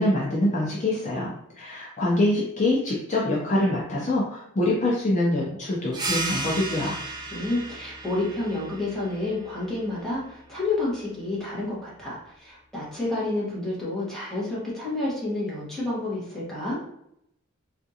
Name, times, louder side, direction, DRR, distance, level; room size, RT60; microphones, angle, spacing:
voice 1, 0.0-7.0, left 1 dB, 35° left, -5 dB, 0.6 m, -25 dB
sound 1, 5.9-11.1, right 2 dB, 20° right, 0.5 m, -35 dB
voice 2, 7.3-16.8, left 2 dB, ahead, -8 dB, 1.3 m, -29 dB
3.5 x 2.5 x 2.8 m, 0.76 s
head